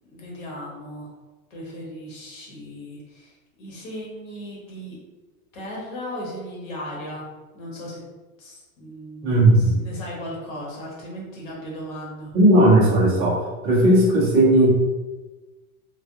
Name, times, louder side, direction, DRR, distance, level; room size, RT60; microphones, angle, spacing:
voice 1, 0.1-1.1 1.5-3.3 3.6-5.0 5.5-7.3 7.5-8.0 8.4-12.3, equal, 65° left, -4 dB, 1.4 m, -36 dB
voice 2, 9.2-9.8 12.3-13.4 13.6-14.7, right 1 dB, 15° right, -7 dB, 0.4 m, -16 dB
3.3 x 2.3 x 2.7 m, 1.2 s
supercardioid pair, 170°, 42 cm